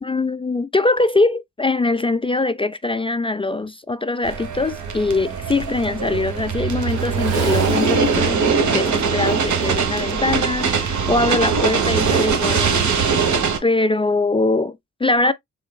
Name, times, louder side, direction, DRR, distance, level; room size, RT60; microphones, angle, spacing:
voice 1, 0.0-13.1 13.6-15.3, left 2 dB, 15° left, 0.4 m, -22 dB
sound 1, 4.2-13.6, right 5 dB, 55° right, 1.1 m, -21 dB
Water / Splash splatter, 6.9-8.7 9.0-9.3 9.9-10.1 10.5-10.6, right 7 dB, 85° right, 1.0 m, -36 dB
3.7 x 3.6 x 2.2 m
hypercardioid pair, 45°, 35 cm